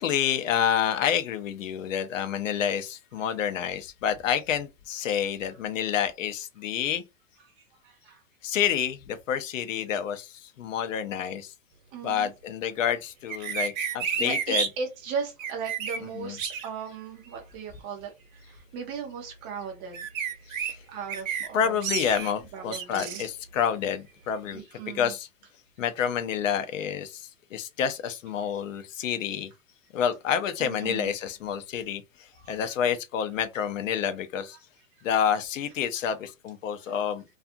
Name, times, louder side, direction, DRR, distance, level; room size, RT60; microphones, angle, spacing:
voice 1, 0.0-7.0 8.4-11.5 12.0-14.7 16.0-16.4 20.6-20.8 21.5-24.6 24.9-25.3 25.8-29.5 29.9-34.6 35.0-37.2, left 8 dB, 65° left, 0.6 m, -28 dB
voice 2, 7.5-8.2 11.9-12.3 14.1-20.1 20.9-21.8 22.5-23.2 24.5-25.1 30.6-31.1 32.3-32.8 36.8-36.9, right 6 dB, 15° right, 0.4 m, -38 dB
sound 1, 13.3-14.7 15.4-16.0 16.4-16.7 19.9-20.7 21.1-21.5 21.8-22.3 22.7-23.3, right 7 dB, 65° right, 0.9 m, -30 dB
2.4 x 2.4 x 2.6 m
hypercardioid pair, 140°, 41 cm